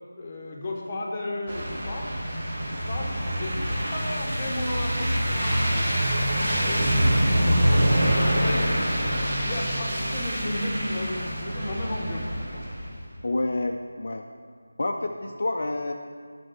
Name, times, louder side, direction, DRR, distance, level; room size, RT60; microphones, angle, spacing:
voice 1, 0.2-2.1 2.9-3.5 3.9-5.9 6.3-7.5 8.4-8.7 9.4-12.8 15.1-15.2, left 1 dB, 25° left, 0 dB, 1.1 m, -34 dB
sound 1, 1.5-13.0, equal, 40° right, 2.0 m, -25 dB
voice 2, 13.2-14.2 14.8-15.9, left 2 dB, 55° left, 2 dB, 0.5 m, -28 dB
6.9 x 6.3 x 6.3 m, 2.1 s
figure-of-eight pair, 165°, 0 cm